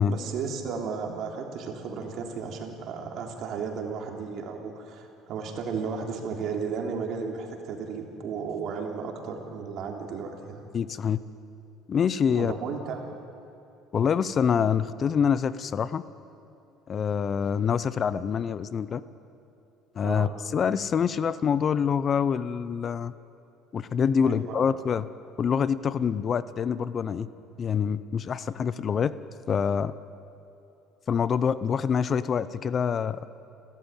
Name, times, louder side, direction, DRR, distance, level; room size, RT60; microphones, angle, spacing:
voice 1, 0.1-10.7 12.3-13.0 20.0-20.3 24.2-24.6, right 5 dB, 60° right, 2 dB, 3.4 m, -34 dB
voice 2, 10.7-11.2 11.9-12.5 13.9-16.0 16.9-19.0 20.0-23.1 23.7-25.1 25.4-27.3 27.6-29.1 29.5-29.9 31.1-33.4, left 7 dB, 40° left, 16 dB, 0.7 m, -26 dB
29.5 x 13.5 x 9.0 m, 2.7 s
supercardioid pair, 100°, 0 cm